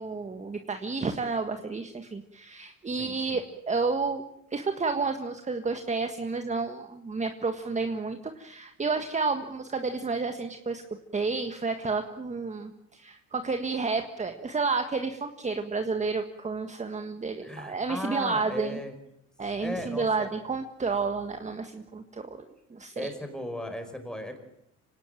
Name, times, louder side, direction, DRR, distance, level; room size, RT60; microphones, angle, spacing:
voice 1, 0.0-4.2 4.5-10.8 11.1-18.8 19.4-23.1, right 4 dB, 20° right, 7 dB, 1.6 m, -31 dB
voice 2, 2.9-3.4 17.4-18.9 19.6-20.3 23.0-24.4, left 1 dB, ahead, 6 dB, 5.0 m, -37 dB
25.5 x 18.0 x 9.1 m, 0.78 s
cardioid pair, 110°, 32 cm